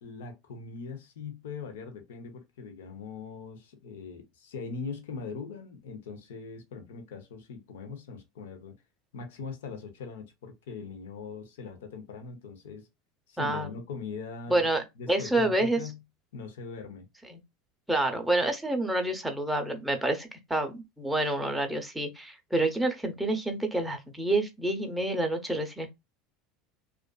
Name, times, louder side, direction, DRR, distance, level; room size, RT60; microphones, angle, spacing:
voice 1, 0.0-8.7 9.1-12.9 13.3-14.7 15.0-16.0 16.3-17.1, left 5 dB, 85° left, 0.7 m, -41 dB
voice 2, 13.4-13.8 14.5-15.8 17.3-17.4 17.9-25.9, right 2 dB, 5° right, 0.6 m, -28 dB
2.4 x 2.4 x 2.2 m
supercardioid pair, 105°, 0 cm